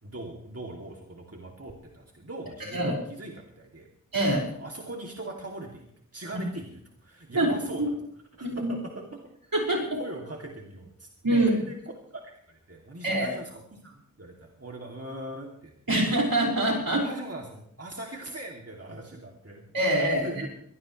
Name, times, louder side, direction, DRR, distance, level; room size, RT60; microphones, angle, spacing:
voice 1, 0.0-3.9 4.6-5.9 6.1-7.8 8.4-9.2 9.9-11.8 12.1-16.0 17.0-19.6 19.9-20.5, right 1 dB, 45° right, 0 dB, 2.7 m, -40 dB
voice 2, 4.1-4.5 6.3-6.4 7.3-7.9 8.4-8.7 9.5-10.0 11.2-11.5 13.0-13.3 15.9-17.1 19.7-20.3, right 1 dB, 75° right, -1 dB, 5.4 m, -25 dB
23.0 x 17.5 x 3.3 m, 0.69 s
wide cardioid pair, 55°, 35 cm